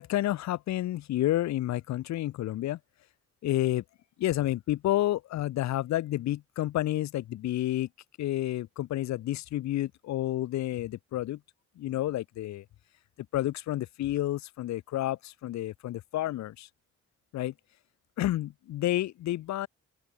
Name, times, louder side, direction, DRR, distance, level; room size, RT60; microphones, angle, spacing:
voice 1, 0.0-2.8 3.4-3.8 4.2-7.9 8.2-11.4 11.8-12.6 13.3-16.7 17.3-17.5 18.2-19.7, left 14 dB, 70° left, 0.5 m, -30 dB
open air
cardioid pair, 85°, 29 cm